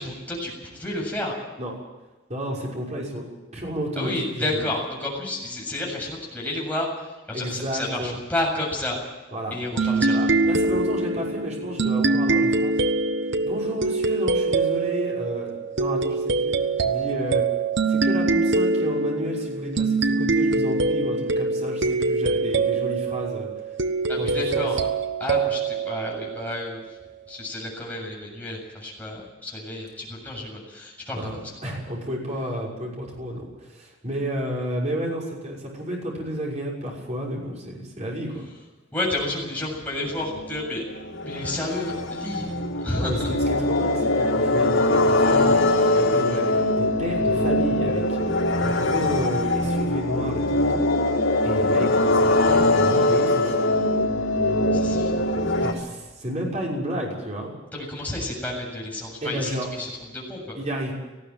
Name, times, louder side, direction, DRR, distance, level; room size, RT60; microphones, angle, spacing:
voice 1, 0.0-1.4 4.0-9.0 9.5-10.2 24.1-24.8 25.2-26.8 27.3-31.3 38.9-40.8 41.2-42.5 42.8-43.4 54.7-55.3 57.7-60.6, left 1 dB, 10° left, -3 dB, 7.6 m, -30 dB
voice 2, 2.3-3.2 3.5-4.6 7.3-8.2 9.3-12.8 13.4-16.6 16.8-17.4 17.9-23.5 24.1-24.7 31.1-38.5 43.0-48.2 48.6-50.8 51.4-53.5 55.6-57.5 59.2-59.7 60.6-60.9, equal, 35° right, -3 dB, 6.2 m, -31 dB
sound 1, 9.8-26.9, right 3 dB, 60° right, 1.2 m, -24 dB
sound 2, 40.2-55.7, left 2 dB, 85° left, 4.0 m, -22 dB
19.0 x 15.5 x 9.1 m, 1.2 s
head